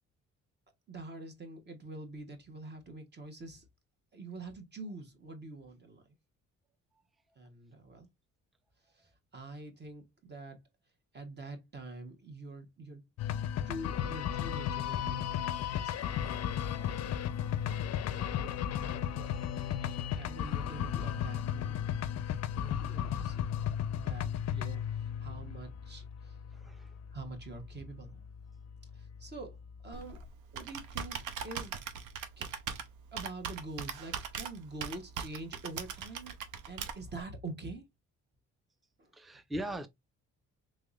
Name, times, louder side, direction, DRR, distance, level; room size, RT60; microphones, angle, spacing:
voice 1, 0.9-3.7 4.1-6.0 7.4-8.1 8.9-10.6 11.1-13.0 13.6-17.2 17.8-19.4 20.2-21.9 22.5-23.5 23.9-26.4 27.1-28.3 28.9-29.6 29.8-30.2 30.5-31.8 32.4-32.5 33.1-36.4 36.7-37.8 39.0-39.1, right 2 dB, 35° right, 1.1 m, -46 dB
sound 1, 13.2-30.3, left 9 dB, 60° left, 0.4 m, -35 dB
voice 2, 26.5-27.0 39.1-39.9, right 1 dB, ahead, 0.4 m, -40 dB
Computer keyboard, 29.9-37.2, right 7 dB, 85° right, 0.7 m, -41 dB
3.5 x 3.2 x 2.4 m
cardioid pair, 90°, 30 cm